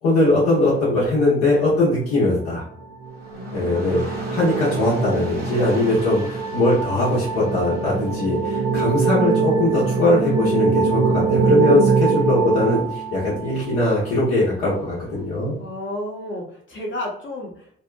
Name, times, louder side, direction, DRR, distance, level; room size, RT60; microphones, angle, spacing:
voice 1, 0.0-2.6 3.5-15.6, left 2 dB, 85° left, -8 dB, 0.8 m, -20 dB
sound 1, 2.8-13.5, right 4 dB, 65° right, 0.6 m, -23 dB
Dog / Rain, 3.1-15.3, right 1 dB, 35° right, 1.3 m, -42 dB
voice 2, 3.3-4.0 15.6-17.7, left 1 dB, 40° left, -2 dB, 0.9 m, -32 dB
2.7 x 2.1 x 2.3 m, 0.65 s
hypercardioid pair, 45°, 29 cm